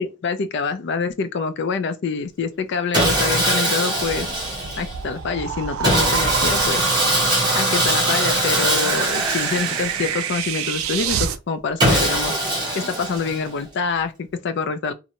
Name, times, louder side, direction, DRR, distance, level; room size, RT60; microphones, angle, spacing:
voice 1, 0.0-4.3 4.8-6.8 7.5-12.3 12.8-14.9, left 5 dB, 55° left, 0.4 m, -26 dB
Sawing, 2.9-5.0 5.8-10.4 11.8-13.6, right 1 dB, 20° right, 0.8 m, -22 dB
sound 1, 4.0-11.4, right 8 dB, 85° right, 0.3 m, -28 dB
2.6 x 2.0 x 2.8 m
head